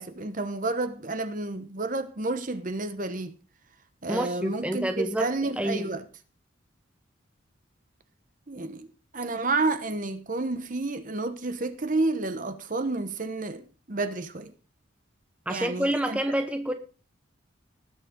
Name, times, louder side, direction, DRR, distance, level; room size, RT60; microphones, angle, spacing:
voice 1, 0.0-3.4 4.0-6.0 8.5-8.9 9.1-14.5 15.5-16.2, right 2 dB, 40° right, 1.1 m, -30 dB
voice 2, 4.1-5.3 5.6-5.9 15.5-16.7, right 1 dB, 5° right, 0.9 m, -28 dB
19.0 x 7.6 x 3.8 m
head